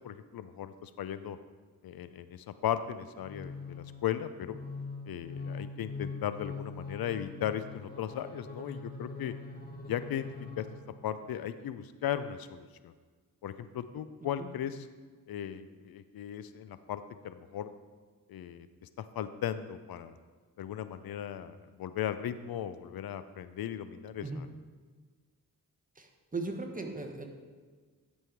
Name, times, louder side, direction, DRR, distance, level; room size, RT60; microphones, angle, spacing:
voice 1, 0.0-1.4 1.8-4.6 5.1-9.3 9.9-10.3 10.6-10.7 11.0-12.9 13.4-14.9 15.3-17.7 18.3-18.7 19.0-20.2 20.6-24.5, left 10 dB, 85° left, 12 dB, 0.5 m, -37 dB
sound 1, 3.2-11.1, left 4 dB, 25° left, 1.6 m, -43 dB
voice 2, 26.0-27.2, right 3 dB, 25° right, 3 dB, 1.2 m, -38 dB
11.5 x 5.5 x 4.6 m, 1.5 s
cardioid pair, 75°, 35 cm